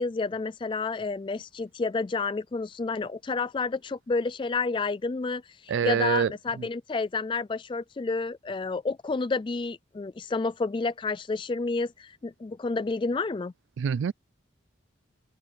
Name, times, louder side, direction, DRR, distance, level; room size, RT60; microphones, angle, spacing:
voice 1, 0.0-13.5, left 3 dB, 25° left, 0.3 m, -30 dB
voice 2, 5.7-6.3 6.6-6.7 13.8-14.1, right 7 dB, 75° right, 0.3 m, -25 dB
open air
head